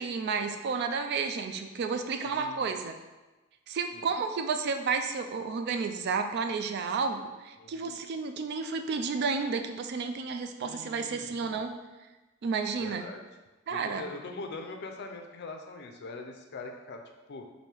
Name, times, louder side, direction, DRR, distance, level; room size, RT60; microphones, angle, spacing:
voice 1, 0.0-2.9 3.7-11.7 12.4-13.1 13.7-14.1, right 5 dB, 50° right, 7 dB, 0.3 m, -31 dB
voice 2, 2.3-2.6 3.9-4.1 7.6-8.0 10.6-11.5 12.8-13.2 13.7-17.0 17.3-17.5, left 3 dB, 50° left, 4 dB, 0.4 m, -42 dB
3.3 x 2.6 x 4.4 m, 1.1 s
head